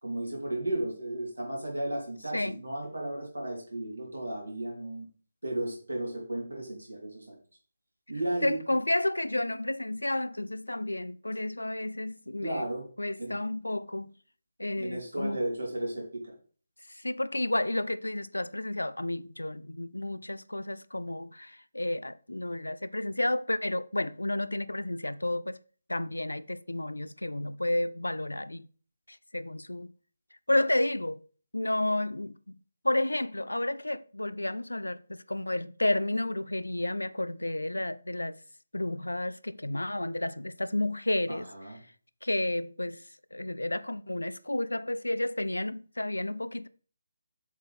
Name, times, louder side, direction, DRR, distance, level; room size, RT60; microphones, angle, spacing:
voice 1, 0.0-5.1 5.4-7.3 8.1-8.6 12.4-12.9 13.2-13.4 14.8-16.3 41.3-41.8, right 1 dB, 80° right, 3.0 m, -34 dB
voice 2, 8.4-12.7 13.0-14.1 14.6-15.4 16.9-25.6 25.9-28.7 29.1-29.9 30.5-31.2 31.5-32.4 32.8-38.4 38.7-41.5 42.2-43.1 43.3-46.7, left 1 dB, 80° left, 0.4 m, -31 dB
7.3 x 3.8 x 4.1 m
figure-of-eight pair, 145°, 0 cm